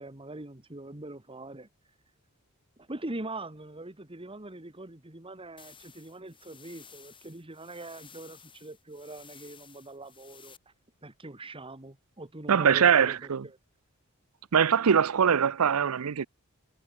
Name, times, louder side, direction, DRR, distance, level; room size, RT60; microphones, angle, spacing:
voice 1, 0.0-2.0 2.8-10.7 11.0-13.6, right 2 dB, 25° right, 1.8 m, -43 dB
sound 1, 5.6-10.6, left 7 dB, 25° left, 5.3 m, -54 dB
voice 2, 12.5-13.4 14.5-16.3, right 7 dB, 75° right, 0.6 m, -22 dB
head